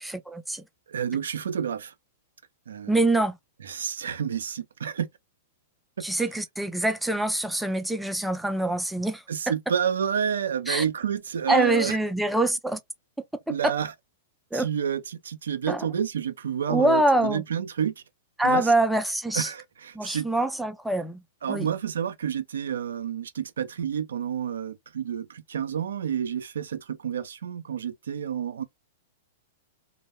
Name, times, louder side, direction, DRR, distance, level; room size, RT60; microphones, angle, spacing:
voice 1, 0.0-0.6 2.9-3.4 6.0-9.2 10.7-10.8 11.5-12.8 13.6-13.7 14.5-14.7 15.7-15.9 16.7-17.4 18.4-19.5 19.9-21.2 21.5-21.7, right 1 dB, 5° right, 0.4 m, -24 dB
voice 2, 0.9-1.9 2.7-3.1 3.6-5.1 9.3-12.0 13.5-13.9 14.5-17.9 18.4-18.7 19.3-20.3 21.4-28.6, right 8 dB, 80° right, 0.4 m, -29 dB
2.1 x 2.0 x 3.0 m
hypercardioid pair, 110°, 0 cm